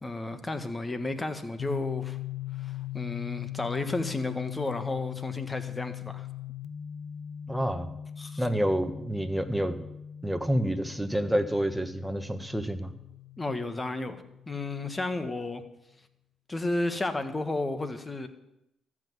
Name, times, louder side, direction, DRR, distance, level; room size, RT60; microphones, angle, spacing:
voice 1, 0.0-2.2 2.6-6.3 8.2-8.5 13.4-15.6 16.5-18.3, left 2 dB, 25° left, 9 dB, 1.6 m, -32 dB
sound 1, 1.6-15.2, left 12 dB, 80° left, 0.5 m, -40 dB
voice 2, 7.5-7.9 8.4-9.8 10.2-12.9, equal, 5° right, 8 dB, 1.4 m, -28 dB
14.0 x 6.2 x 9.6 m, 0.84 s
supercardioid pair, 60°, 0 cm